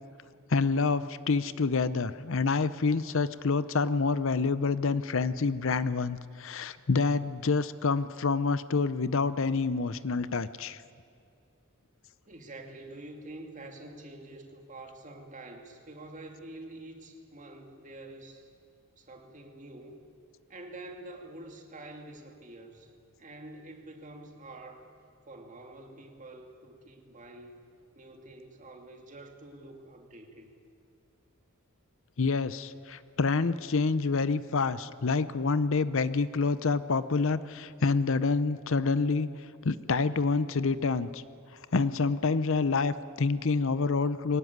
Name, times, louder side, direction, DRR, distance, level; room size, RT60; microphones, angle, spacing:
voice 1, 0.5-10.8 32.2-39.3 39.6-41.2 41.7-44.4, left 4 dB, 60° left, 15 dB, 0.7 m, -27 dB
voice 2, 12.3-18.5 19.0-20.1 20.5-22.9 23.2-24.8 25.2-27.6 28.0-30.5, right 2 dB, 35° right, 3 dB, 2.4 m, -47 dB
23.0 x 18.5 x 9.5 m, 2.4 s
head